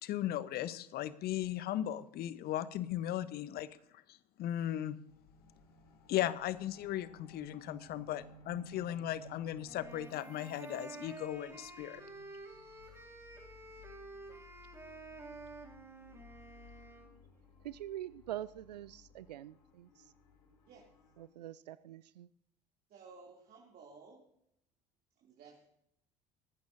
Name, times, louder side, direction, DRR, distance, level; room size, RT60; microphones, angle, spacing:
voice 1, 0.0-3.8 4.1-5.0 6.1-12.0, left 12 dB, 50° left, 0.9 m, -37 dB
sound 1, 5.1-21.3, left 1 dB, 80° left, 3.0 m, -59 dB
sound 2, 9.6-17.1, right 3 dB, 10° right, 4.2 m, -50 dB
voice 2, 17.6-20.1 21.2-22.3, right 12 dB, 80° right, 0.4 m, -45 dB
voice 3, 22.9-24.2 25.2-25.7, right 4 dB, 45° right, 2.8 m, -55 dB
19.0 x 14.5 x 2.7 m
figure-of-eight pair, 60°, 21 cm